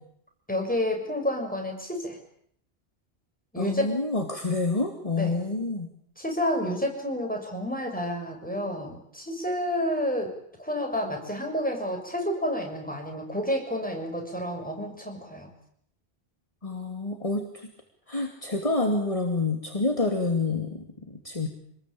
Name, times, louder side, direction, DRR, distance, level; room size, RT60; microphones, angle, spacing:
voice 1, 0.5-2.2 3.5-4.0 5.2-5.4 6.2-15.5, equal, 10° left, 2 dB, 6.6 m, -30 dB
voice 2, 3.6-5.9 16.6-17.7 18.1-21.5, left 3 dB, 30° left, 3 dB, 2.8 m, -28 dB
27.0 x 20.5 x 8.7 m, 0.68 s
omnidirectional pair, 1.1 m